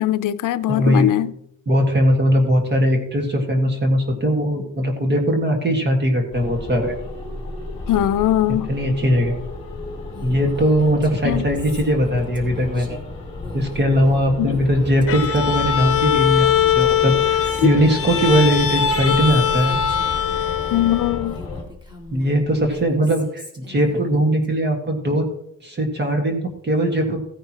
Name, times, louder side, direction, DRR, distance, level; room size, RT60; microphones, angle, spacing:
voice 1, 0.0-1.3 7.9-8.7 11.2-11.4 14.4-14.6 17.6-17.7 20.7-21.4, left 13 dB, 70° left, 0.6 m, -20 dB
voice 2, 0.7-1.1 1.7-6.9 8.7-9.4 10.2-13.0 13.5-19.8 22.1-25.2 25.6-27.2, equal, 30° right, 1.8 m, -20 dB
sound 1, 6.3-21.6, left 2 dB, 20° left, 3.3 m, -33 dB
Female speech woman speaking, 10.1-20.2 20.6-24.5, left 1 dB, 15° right, 2.0 m, -42 dB
Bowed string instrument, 15.1-21.4, left 8 dB, 45° left, 1.0 m, -21 dB
15.5 x 10.5 x 3.0 m
cardioid pair, 165°, 33 cm